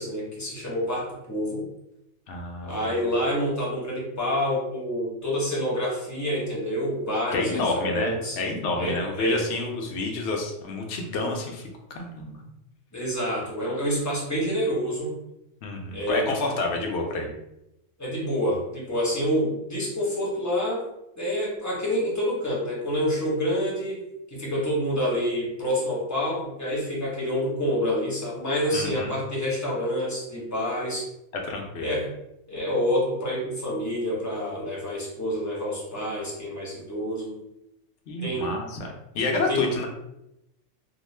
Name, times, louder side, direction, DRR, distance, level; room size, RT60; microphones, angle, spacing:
voice 1, 0.0-1.6 2.6-8.4 8.8-9.4 12.9-15.1 15.9-16.3 18.0-20.8 21.2-24.0 24.3-31.1 31.8-32.1 32.5-37.4 38.2-38.5 39.5-39.8, equal, 15° left, -5 dB, 0.7 m, -27 dB
voice 2, 2.3-2.9 7.3-12.4 15.6-17.3 28.7-29.1 31.3-31.9 38.1-39.9, left 2 dB, 70° left, 2 dB, 0.9 m, -29 dB
2.4 x 2.1 x 3.2 m, 0.85 s
omnidirectional pair, 1.3 m